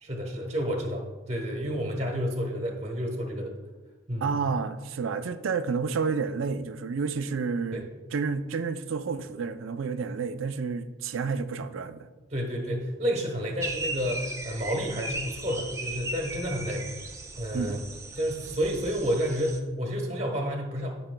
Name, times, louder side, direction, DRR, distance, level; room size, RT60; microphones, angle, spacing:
voice 1, 0.0-3.5 4.1-4.3 7.7-7.8 12.3-17.0 17.4-17.8 18.1-21.0, equal, 35° right, 1.2 m, -30 dB
voice 2, 4.2-12.1 17.5-17.9, right 5 dB, 90° right, 0.5 m, -30 dB
sound 1, 13.6-19.6, right 2 dB, 15° right, 0.5 m, -37 dB
12.5 x 6.0 x 2.2 m
head